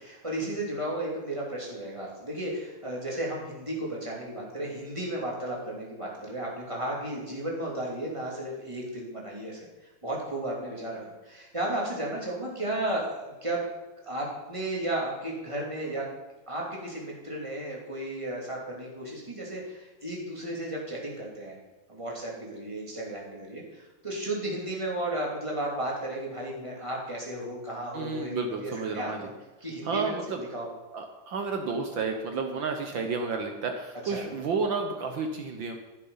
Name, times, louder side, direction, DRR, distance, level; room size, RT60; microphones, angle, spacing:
voice 1, 0.0-9.7 10.0-13.7 14.0-16.0 16.5-21.6 21.9-29.3 29.6-30.7 34.0-34.2, right 1 dB, 10° right, -3 dB, 2.7 m, -34 dB
voice 2, 27.9-29.3 29.8-30.4 30.9-35.8, right 4 dB, 75° right, 4 dB, 1.1 m, -31 dB
15.0 x 7.4 x 5.7 m, 1.1 s
omnidirectional pair, 3.5 m